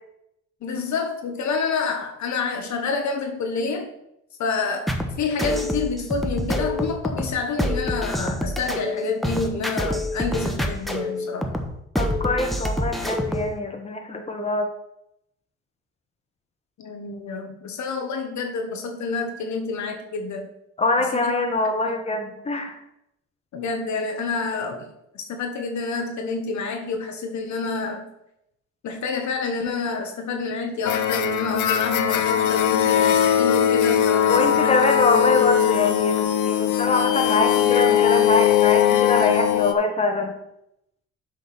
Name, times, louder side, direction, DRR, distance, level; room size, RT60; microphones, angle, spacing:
voice 1, 0.6-3.9 4.4-11.6 16.8-20.5 21.0-21.3 21.8-22.0 23.5-28.1 28.8-34.8, left 4 dB, 70° left, 4 dB, 1.2 m, -28 dB
sound 1, 4.9-13.5, equal, ahead, 1.1 m, -27 dB
voice 2, 12.0-14.7 20.8-22.8 34.3-40.4, left 2 dB, 20° left, 3 dB, 1.6 m, -24 dB
sound 2, 30.8-39.7, left 10 dB, 85° left, 0.8 m, -20 dB
7.4 x 5.1 x 5.9 m, 0.81 s
cardioid pair, 90°, 30 cm